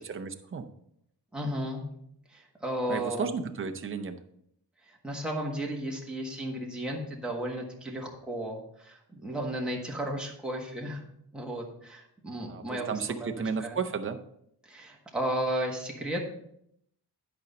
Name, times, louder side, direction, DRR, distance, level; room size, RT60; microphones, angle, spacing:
voice 1, 0.0-0.7 2.9-4.2 12.4-14.2, right 5 dB, 30° right, 5 dB, 0.6 m, -33 dB
voice 2, 1.3-1.8 2.3-3.3 4.9-11.0 11.3-13.3 13.6-13.8 14.6-16.3, right 1 dB, ahead, -2 dB, 1.4 m, -34 dB
11.0 x 5.3 x 4.2 m, 0.73 s
wide cardioid pair, 175°, 40 cm